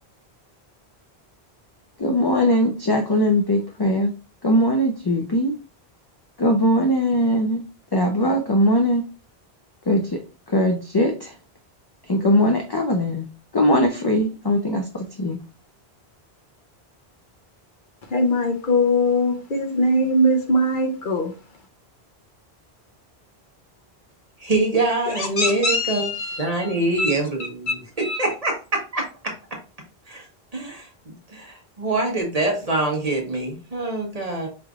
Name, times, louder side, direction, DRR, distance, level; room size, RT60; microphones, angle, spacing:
voice 1, 2.0-4.1 4.4-5.5 6.4-7.6 7.9-9.0 9.9-10.2 10.5-11.3 12.1-13.3 13.5-15.4, equal, 35° left, 0.4 m, -20 dB
voice 2, 18.1-21.3 25.1-27.1 28.0-28.3, left 1 dB, 55° left, 0.8 m, -22 dB
voice 3, 24.4-29.3 30.1-30.3 30.5-34.5, right 2 dB, 40° right, 1.1 m, -25 dB
5.1 x 3.2 x 2.4 m
omnidirectional pair, 1.1 m